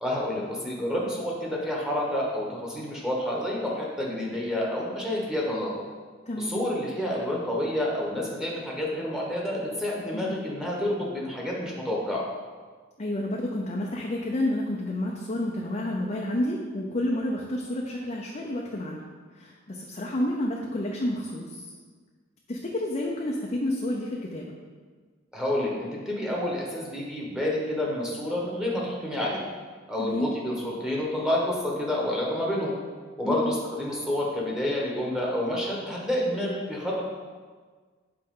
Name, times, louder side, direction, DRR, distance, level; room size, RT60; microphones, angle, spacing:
voice 1, 0.0-5.7 6.4-12.3 25.3-29.4 29.9-32.8 33.2-37.0, left 1 dB, 5° right, -5 dB, 1.2 m, -29 dB
voice 2, 6.3-6.6 10.1-10.4 13.0-19.1 19.3-21.6 22.5-24.5 30.0-30.3 33.2-33.5, left 1 dB, 35° left, -2 dB, 0.6 m, -30 dB
7.7 x 4.7 x 3.8 m, 1.5 s
head